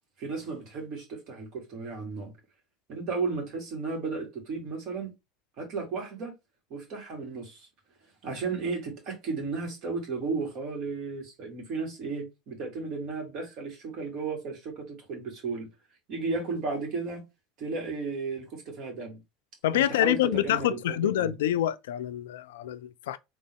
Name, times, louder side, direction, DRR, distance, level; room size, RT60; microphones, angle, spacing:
voice 1, 0.2-2.3 2.9-5.1 5.6-6.3 6.7-7.7 8.2-15.7 16.1-17.2 17.6-19.2 19.7-21.3, right 4 dB, 50° right, 2.1 m, -34 dB
voice 2, 19.6-23.2, left 13 dB, 70° left, 0.3 m, -26 dB
3.9 x 3.0 x 3.3 m
hypercardioid pair, 75°, 0 cm